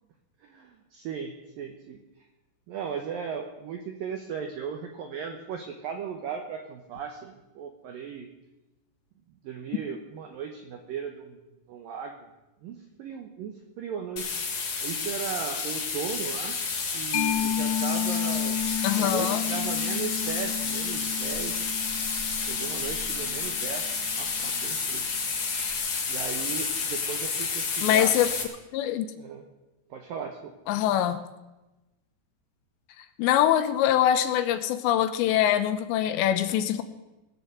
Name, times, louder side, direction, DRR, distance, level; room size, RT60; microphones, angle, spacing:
voice 1, 0.4-2.0 2.7-8.3 9.4-12.3 12.6-14.4 14.8-16.6 16.9-18.6 19.0-21.7 22.4-25.1 26.1-28.2 29.1-29.4 29.9-30.5, right 7 dB, 75° right, 4 dB, 2.2 m, -37 dB
sound 1, 14.2-28.4, left 5 dB, 50° left, 1.7 m, -30 dB
Mallet percussion, 17.1-24.4, left 9 dB, 65° left, 2.5 m, -32 dB
voice 2, 18.8-19.4 27.8-28.3 28.7-29.1 30.7-31.2 33.2-36.8, left 11 dB, 80° left, 11 dB, 3.0 m, -23 dB
20.0 x 7.0 x 7.9 m, 1.0 s
omnidirectional pair, 5.3 m